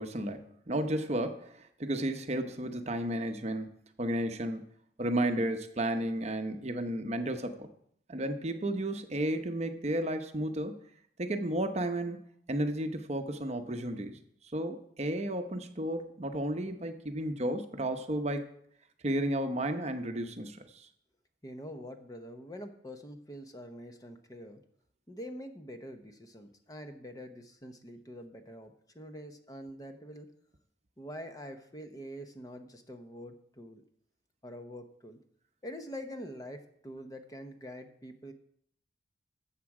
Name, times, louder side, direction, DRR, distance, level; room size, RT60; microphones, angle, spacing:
voice 1, 0.0-3.7 4.0-4.6 5.0-7.7 8.1-10.8 11.2-12.2 12.5-14.2 14.5-18.5 19.0-20.9, right 1 dB, 35° right, 7 dB, 0.8 m, -33 dB
voice 2, 21.4-24.6 25.1-30.3 31.0-33.8 34.4-35.2 35.6-38.3, equal, 20° left, 7 dB, 0.8 m, -45 dB
13.5 x 7.4 x 4.8 m, 0.68 s
head